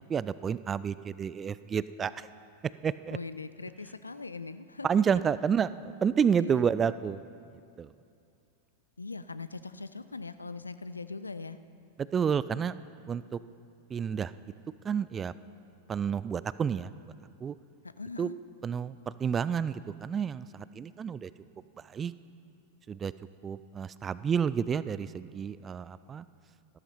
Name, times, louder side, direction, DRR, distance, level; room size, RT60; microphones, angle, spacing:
voice 1, 0.1-2.3 2.6-3.2 4.8-7.3 7.8-7.9 12.0-12.7 13.1-13.4 13.9-14.3 14.8-15.3 15.9-16.9 17.4-17.6 18.2-18.3 18.6-21.3 21.8-22.1 22.9-23.1 23.4-26.3, right 7 dB, 20° right, 16 dB, 0.3 m, -30 dB
voice 2, 3.1-4.9 6.4-6.6 9.0-11.6 18.0-18.3, left 3 dB, 80° left, 13 dB, 0.4 m, -40 dB
14.0 x 13.0 x 4.2 m, 2.5 s
figure-of-eight pair, 90°, 0 cm